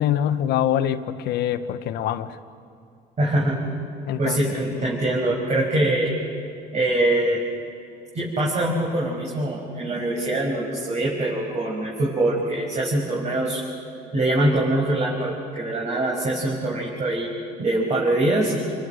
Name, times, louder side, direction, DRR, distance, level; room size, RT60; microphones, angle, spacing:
voice 1, 0.0-2.3 4.1-5.0, left 10 dB, 80° left, 10 dB, 1.2 m, -25 dB
voice 2, 3.2-3.6 4.2-6.1 6.7-7.4 8.1-13.6 14.1-17.3 17.6-18.7, right 1 dB, 40° right, -4 dB, 5.9 m, -23 dB
29.0 x 24.5 x 6.6 m, 2.5 s
cardioid pair, 110°, 17 cm